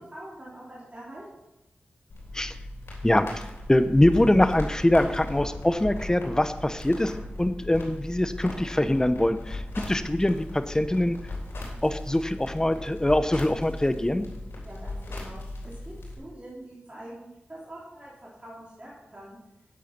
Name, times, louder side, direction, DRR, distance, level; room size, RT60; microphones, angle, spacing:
voice 1, 0.1-1.2 14.6-19.4, right 1 dB, 30° right, -7 dB, 3.4 m, -44 dB
sound 1, 2.1-16.1, left 2 dB, 85° left, 3.6 m, -37 dB
voice 2, 3.0-3.4 3.7-7.1 7.4-11.2 11.8-14.2, left 1 dB, 15° left, 11 dB, 0.8 m, -23 dB
9.2 x 8.3 x 6.0 m, 0.97 s
cardioid pair, 55°, 4 cm